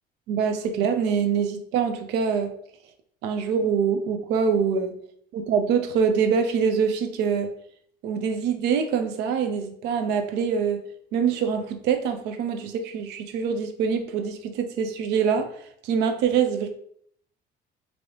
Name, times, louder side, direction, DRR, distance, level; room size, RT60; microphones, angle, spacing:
voice 1, 0.3-2.5 3.2-4.9 5.3-7.5 8.0-10.8 11.1-16.7, right 6 dB, 90° right, 7 dB, 0.4 m, -24 dB
3.2 x 2.6 x 2.9 m, 0.65 s
cardioid pair, 110°, 17 cm